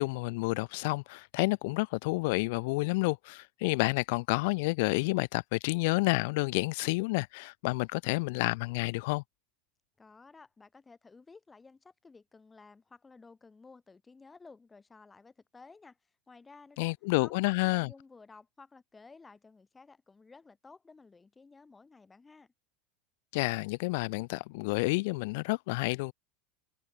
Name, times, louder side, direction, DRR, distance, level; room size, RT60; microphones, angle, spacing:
voice 1, 0.0-9.2 16.8-17.9 23.3-26.1, left 25 dB, 70° left, 0.8 m, -29 dB
voice 2, 10.0-16.0 16.3-16.9 17.2-22.5, left 4 dB, 15° left, 7.1 m, -55 dB
supercardioid pair, 110°, 0 cm